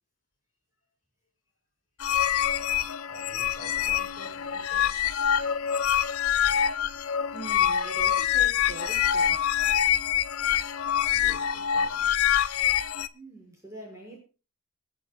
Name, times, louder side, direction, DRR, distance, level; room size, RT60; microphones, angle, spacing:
sound 1, 2.0-13.1, left 10 dB, 90° left, 0.6 m, -25 dB
voice 1, 3.1-5.2 11.1-12.1, left 1 dB, 40° left, 5.4 m, -48 dB
voice 2, 7.3-9.7 13.1-14.2, right 2 dB, 15° right, 6.2 m, -43 dB
25.5 x 8.7 x 2.4 m
head